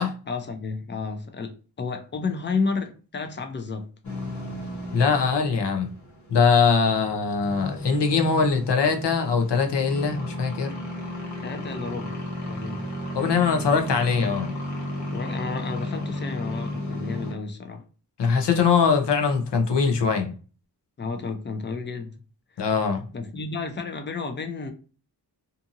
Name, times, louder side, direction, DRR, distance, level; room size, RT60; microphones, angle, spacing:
voice 1, 0.3-3.9 11.4-12.2 12.5-12.8 15.1-17.8 21.0-22.2 22.6-22.7 23.1-24.7, left 4 dB, 30° left, 0.5 m, -31 dB
sound 1, 4.0-17.3, left 1 dB, 45° left, 1.0 m, -34 dB
voice 2, 4.9-5.9 6.3-10.7 13.1-14.5 18.2-20.3 22.6-23.0, left 5 dB, 85° left, 0.7 m, -22 dB
2.6 x 2.6 x 2.5 m
wide cardioid pair, 90°, 41 cm